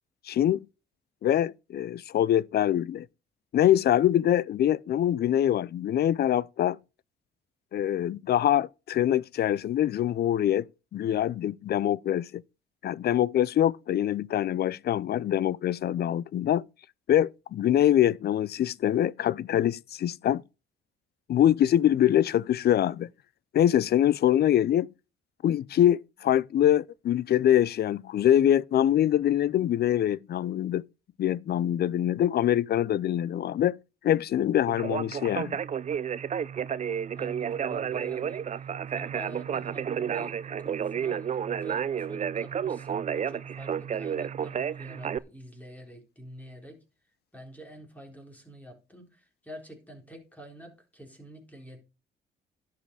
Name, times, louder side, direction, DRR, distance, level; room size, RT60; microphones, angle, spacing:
voice 1, 0.3-0.7 1.2-3.1 3.5-6.8 7.7-12.4 12.8-16.7 17.1-20.4 21.3-23.1 23.5-24.9 25.4-30.9 31.2-33.8 34.0-35.6, left 11 dB, 55° left, 0.5 m, -24 dB
Conversation, 34.7-45.2, right 8 dB, 35° right, 0.5 m, -31 dB
voice 2, 37.1-46.8 47.3-51.8, equal, 10° left, 4.1 m, -47 dB
11.0 x 7.5 x 4.8 m
cardioid pair, 90°, 20 cm